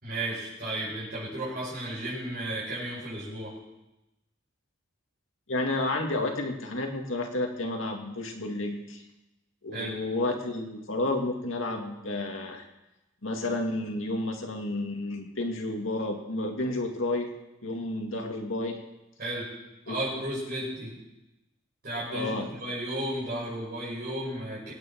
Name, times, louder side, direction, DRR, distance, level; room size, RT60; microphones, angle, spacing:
voice 1, 0.0-3.6 9.7-9.9 19.2-19.5 19.9-20.9 21.8-24.7, right 1 dB, 50° right, -9 dB, 6.3 m, -34 dB
voice 2, 5.5-9.0 9.6-12.6 13.2-17.3 17.6-18.8 19.9-20.0 22.1-22.5, left 2 dB, 80° left, 2 dB, 2.1 m, -31 dB
25.0 x 9.3 x 4.5 m, 0.96 s
head